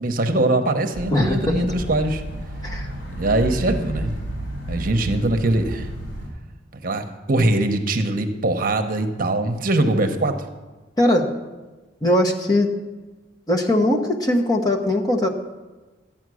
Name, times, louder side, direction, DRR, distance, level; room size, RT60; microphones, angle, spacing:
voice 1, 0.0-2.2 3.2-4.1 4.7-5.9 6.8-10.3, right 2 dB, 50° right, 7 dB, 0.9 m, -22 dB
sound 1, 0.9-6.3, right 1 dB, 80° left, 3.8 m, -31 dB
voice 2, 1.1-1.6 2.6-2.9 11.0-11.3 12.0-12.7 13.5-15.3, left 1 dB, 20° left, 1 dB, 1.2 m, -20 dB
12.5 x 8.8 x 6.3 m, 1.2 s
head